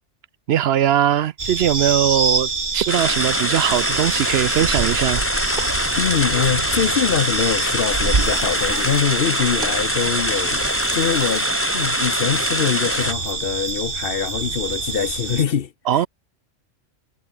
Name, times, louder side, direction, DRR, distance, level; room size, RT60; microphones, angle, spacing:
voice 1, 0.5-5.2 15.9-16.1, right 10 dB, 65° right, 0.7 m, -20 dB
sound 1, 1.4-15.4, right 4 dB, 40° right, 2.0 m, -26 dB
sound 2, 2.9-13.1, left 1 dB, 10° left, 2.8 m, -24 dB
voice 2, 6.0-10.6 10.9-11.5 11.7-15.7, left 7 dB, 50° left, 0.9 m, -23 dB
omnidirectional pair, 1.4 m